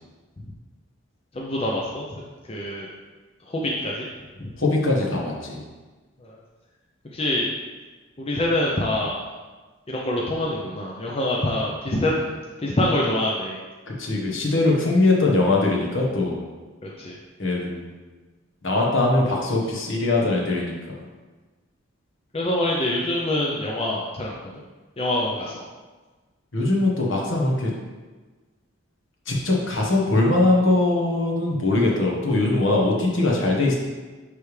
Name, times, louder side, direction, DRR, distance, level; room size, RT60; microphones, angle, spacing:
voice 1, 1.3-2.1 2.5-2.9 3.5-4.1 4.4-4.5 6.2-6.4 7.1-7.5 8.2-9.2 9.9-12.2 12.6-13.6 16.8-17.1 22.3-24.5 25.0-25.6, left 1 dB, 30° left, -3 dB, 0.6 m, -25 dB
voice 2, 4.6-5.6 13.9-16.4 17.4-17.9 18.6-21.0 26.5-27.7 29.3-33.7, left 2 dB, 60° left, -2 dB, 1.3 m, -21 dB
10.0 x 3.5 x 3.3 m, 1.3 s
head